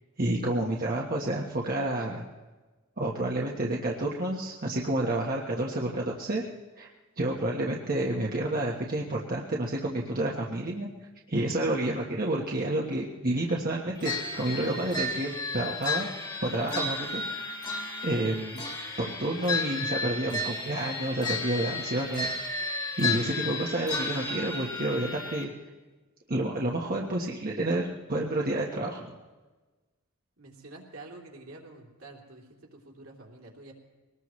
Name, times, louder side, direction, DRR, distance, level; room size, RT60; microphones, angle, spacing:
voice 1, 0.2-2.2 3.0-6.4 6.8-6.9 7.2-10.9 11.3-16.1 16.4-17.5 18.0-18.6 19.0-22.3 22.6-25.5 26.3-29.1, right 1 dB, 45° right, -2 dB, 1.3 m, -30 dB
sound 1, 14.0-25.4, left 3 dB, 20° left, 2.0 m, -33 dB
voice 2, 30.4-33.7, right 2 dB, 70° right, -1 dB, 3.2 m, -48 dB
22.5 x 19.5 x 3.2 m, 1.2 s
head